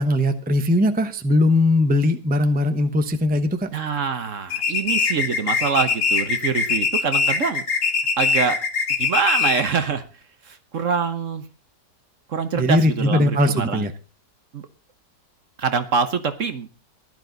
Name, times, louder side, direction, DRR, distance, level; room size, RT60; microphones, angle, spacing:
voice 1, 0.0-3.7 12.6-13.9, left 1 dB, 5° right, 8 dB, 0.8 m, -20 dB
voice 2, 3.7-7.6 8.2-8.6 9.0-10.0 10.4-11.5 12.3-13.9 14.5-14.7 15.6-16.7, right 6 dB, 55° right, 10 dB, 1.3 m, -25 dB
sound 1, 4.5-9.8, left 5 dB, 75° left, 2.3 m, -22 dB
15.5 x 11.5 x 4.0 m, 0.34 s
omnidirectional pair, 1.7 m